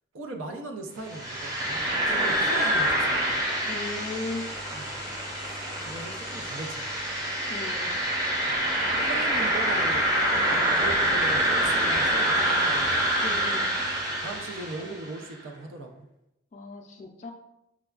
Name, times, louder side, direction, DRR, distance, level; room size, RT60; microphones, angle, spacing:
voice 1, 0.1-3.4 4.7-5.1 5.4-5.6 5.9-6.9 8.5-10.0 10.4-13.0 14.2-16.1, right 3 dB, 80° right, 3 dB, 0.5 m, -39 dB
sound 1, 1.1-15.0, right 1 dB, 15° right, 0.6 m, -26 dB
voice 2, 3.7-4.5 5.0-5.1 7.5-8.0 10.3-10.6 13.2-13.7 16.5-17.3, left 2 dB, 35° left, 1 dB, 0.3 m, -37 dB
5.8 x 2.2 x 2.3 m, 0.87 s
head